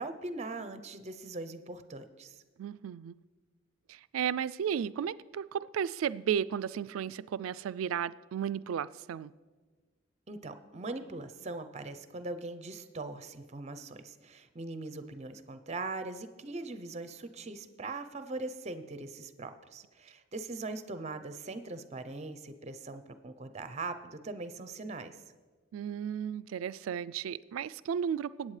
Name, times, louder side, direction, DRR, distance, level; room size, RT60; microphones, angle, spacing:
voice 1, 0.0-2.3 10.3-25.2, right 3 dB, 35° right, 11 dB, 0.6 m, -41 dB
voice 2, 2.6-3.1 3.9-9.3 15.0-15.1 25.7-28.6, right 8 dB, 90° right, 17 dB, 0.3 m, -34 dB
20.0 x 8.6 x 3.2 m, 1.4 s
head